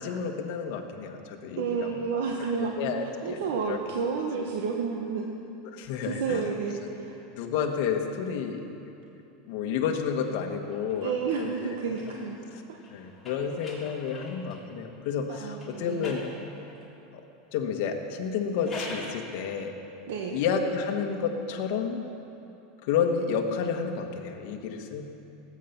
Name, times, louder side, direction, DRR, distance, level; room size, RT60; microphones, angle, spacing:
voice 1, 0.0-2.1 2.6-3.8 4.4-4.5 5.7-6.4 7.4-8.6 9.5-11.7 12.9-16.2 17.1-17.2 17.5-19.7 20.3-22.0 22.8-25.0, left 6 dB, 55° left, 3 dB, 1.5 m, -30 dB
voice 2, 1.6-2.7 3.0-5.2 6.0-7.2 11.0-12.4 12.7-12.8 15.3-16.1 20.1-20.4, right 5 dB, 80° right, 1 dB, 1.1 m, -31 dB
sound 1, 10.6-14.7 15.5-16.9 18.3-19.2, left 2 dB, 10° left, 3.3 m, -44 dB
18.5 x 8.5 x 6.0 m, 2.9 s
supercardioid pair, 150°, 0 cm